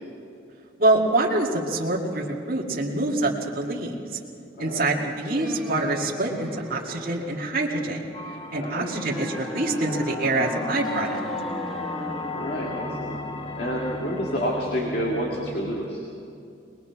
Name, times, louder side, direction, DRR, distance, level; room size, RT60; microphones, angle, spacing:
voice 1, 0.8-3.9 4.6-8.0 8.5-11.2, right 2 dB, 50° right, -3 dB, 2.2 m, -25 dB
voice 2, 4.6-4.9 8.5-9.2 12.3-13.2 13.6-16.0, equal, 55° left, -2 dB, 2.2 m, -29 dB
sound 1, 5.3-15.8, equal, ahead, 1.5 m, -37 dB
sound 2, 8.1-14.6, left 4 dB, 30° left, 0.9 m, -36 dB
21.5 x 21.0 x 5.9 m, 2.6 s
head